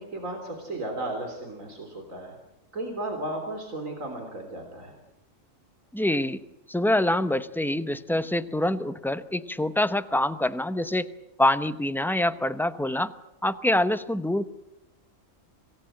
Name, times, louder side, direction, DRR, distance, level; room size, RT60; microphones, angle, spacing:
voice 1, 0.0-2.4 2.7-5.0, right 2 dB, 90° right, 3 dB, 3.9 m, -34 dB
voice 2, 5.9-6.4 6.7-11.1 11.4-13.1 13.4-14.5, left 1 dB, ahead, 12 dB, 0.6 m, -25 dB
26.5 x 18.0 x 7.8 m, 0.93 s
omnidirectional pair, 1.3 m